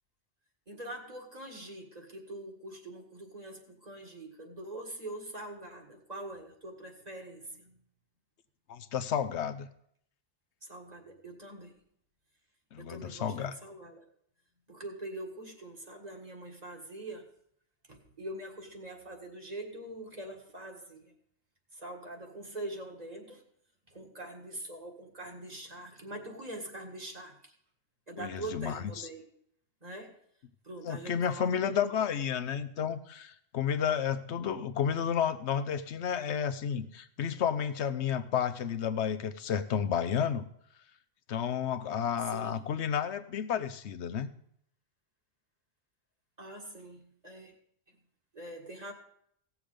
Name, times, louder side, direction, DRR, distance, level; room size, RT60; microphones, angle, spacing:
voice 1, 0.7-7.7 10.6-11.7 12.8-14.0 14.7-17.3 17.9-21.1 21.7-23.4 23.9-27.5 28.1-29.3 29.8-30.1 30.6-31.9 42.2-42.6 46.4-47.5 48.3-48.9, right 1 dB, 40° right, 1 dB, 2.0 m, -43 dB
voice 2, 8.7-9.7 12.7-13.5 28.2-29.1 30.8-40.4 41.3-44.3, left 8 dB, 85° left, 11 dB, 1.0 m, -31 dB
17.0 x 7.1 x 5.1 m, 0.68 s
omnidirectional pair, 1.1 m